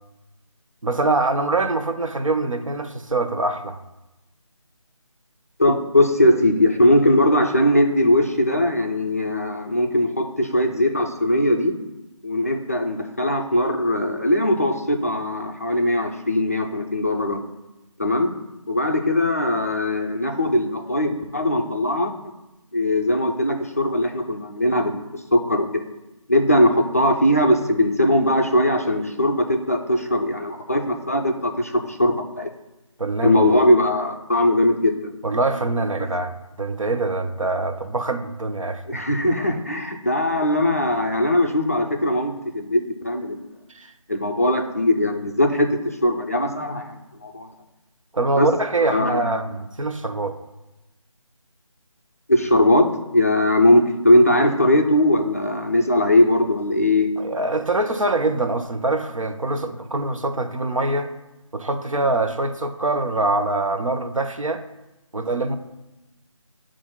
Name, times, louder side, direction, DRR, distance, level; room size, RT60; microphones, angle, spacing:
voice 1, 0.8-3.8 33.0-33.5 35.2-38.8 43.7-43.9 48.1-50.4 57.2-61.1 61.5-64.6 65.1-65.5, right 2 dB, 70° right, 6 dB, 0.7 m, -24 dB
voice 2, 5.6-11.7 12.2-17.4 18.0-18.3 18.7-22.1 22.7-25.8 26.3-32.5 33.2-35.1 38.9-43.4 44.1-45.7 46.0-47.5 48.4-48.5 48.8-49.3 52.3-57.1, left 1 dB, 25° left, 2 dB, 0.4 m, -20 dB
6.9 x 2.5 x 5.5 m, 0.98 s
figure-of-eight pair, 160°, 17 cm